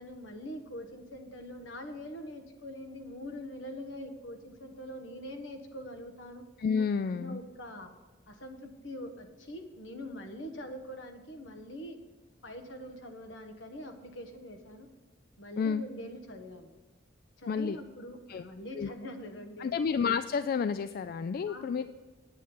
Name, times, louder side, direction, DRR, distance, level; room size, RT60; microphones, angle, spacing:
voice 1, 0.0-6.4 7.1-7.9 8.3-12.0 12.4-14.9 15.4-16.7 17.4-19.8 21.4-21.9, equal, 75° left, 5 dB, 1.4 m, -43 dB
voice 2, 6.6-7.4 15.6-15.8 17.5-17.8 18.3-18.4 18.8-18.9 19.6-21.9, left 6 dB, 50° left, 12 dB, 0.3 m, -30 dB
9.1 x 8.5 x 5.6 m, 1.3 s
head